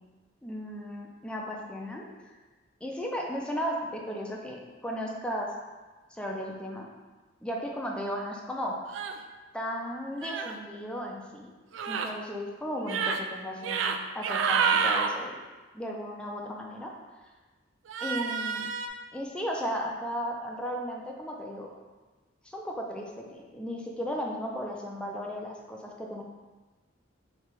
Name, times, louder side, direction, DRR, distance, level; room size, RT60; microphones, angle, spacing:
voice 1, 0.4-2.3 2.8-5.5 6.1-6.9 7.4-9.0 9.5-11.5 11.9-15.4 15.7-16.9 17.2-17.3 18.0-18.7 19.1-21.7 22.4-26.2, equal, 5° left, -1 dB, 0.4 m, -35 dB
sound 1, 8.9-9.2 10.2-10.5 11.7-12.1 12.8-13.2 13.6-14.0 14.2-15.1 17.9-18.9, right 6 dB, 80° right, 0.3 m, -28 dB
3.3 x 2.9 x 4.5 m, 1.2 s
head